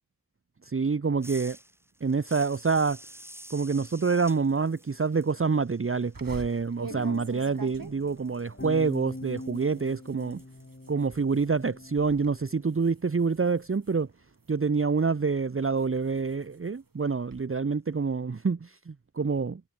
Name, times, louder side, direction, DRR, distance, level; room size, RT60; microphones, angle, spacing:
voice 1, 0.6-1.6 2.0-3.0 3.5-10.4 10.9-14.1 14.5-19.6, right 4 dB, 35° right, 0.8 m, -27 dB
sound 1, 1.2-6.7 7.0-11.9, equal, 5° right, 4.9 m, -51 dB
sound 2, 6.1-11.5 11.9-12.3 12.7-14.7 15.2-17.4, right 3 dB, 65° right, 5.3 m, -46 dB
sound 3, 6.9-12.7, left 2 dB, 35° left, 7.9 m, -43 dB
wide cardioid pair, 50°, 36 cm